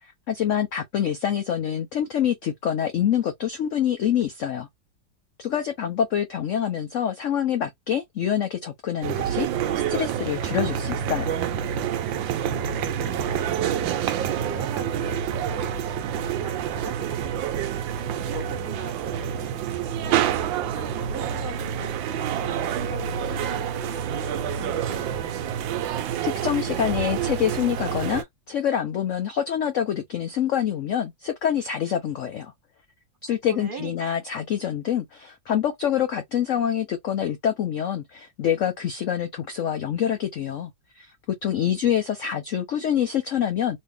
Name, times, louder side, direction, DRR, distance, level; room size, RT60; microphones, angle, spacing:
voice 1, 0.0-4.7 5.4-11.4 26.2-32.5 33.2-43.8, left 9 dB, 75° left, 0.7 m, -26 dB
sound 1, 9.0-28.2, right 9 dB, 85° right, 1.4 m, -27 dB
voice 2, 12.1-14.0 14.4-17.4 18.0-25.4 33.5-33.9, right 3 dB, 45° right, 0.7 m, -40 dB
3.2 x 2.7 x 3.2 m
omnidirectional pair, 2.0 m